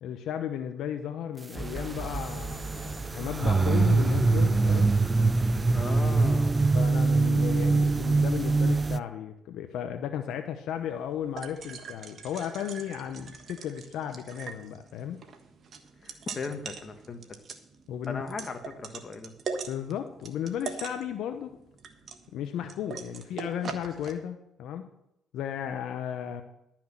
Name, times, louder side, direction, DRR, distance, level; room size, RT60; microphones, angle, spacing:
voice 1, 0.0-5.0 6.7-15.3 17.9-18.2 19.7-21.6 22.3-25.0 25.3-26.4, left 9 dB, 75° left, 7 dB, 0.8 m, -34 dB
sound 1, 1.5-9.0, right 3 dB, 25° right, 0.4 m, -24 dB
voice 2, 5.7-6.7 16.0-17.2 18.1-19.3, left 4 dB, 35° left, 5 dB, 1.6 m, -37 dB
sound 2, 10.8-24.1, right 5 dB, 55° right, 1.4 m, -42 dB
12.5 x 6.0 x 7.4 m, 0.82 s
cardioid pair, 90°, 0 cm